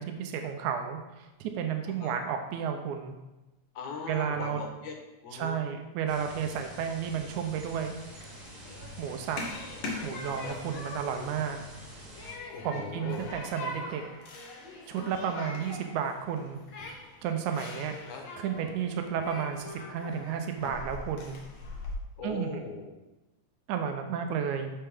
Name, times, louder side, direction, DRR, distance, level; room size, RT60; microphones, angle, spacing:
voice 1, 0.0-3.2 4.1-4.6 5.3-7.9 9.0-9.4 10.0-11.6 12.6-14.0 14.9-16.6 17.2-18.0 18.4-21.4 22.2-22.6 23.7-24.7, right 7 dB, 90° right, 5 dB, 2.1 m, -32 dB
voice 2, 3.8-4.9 5.2-5.6 10.4-10.6 12.5-13.3 18.1-18.2 22.2-23.0, left 4 dB, 90° left, 2 dB, 2.6 m, -39 dB
sound 1, 6.1-12.3, equal, 40° right, 2.2 m, -47 dB
Human group actions, 7.6-21.9, left 2 dB, 60° left, 1.6 m, -42 dB
8.7 x 5.7 x 3.5 m, 1.0 s
omnidirectional pair, 3.3 m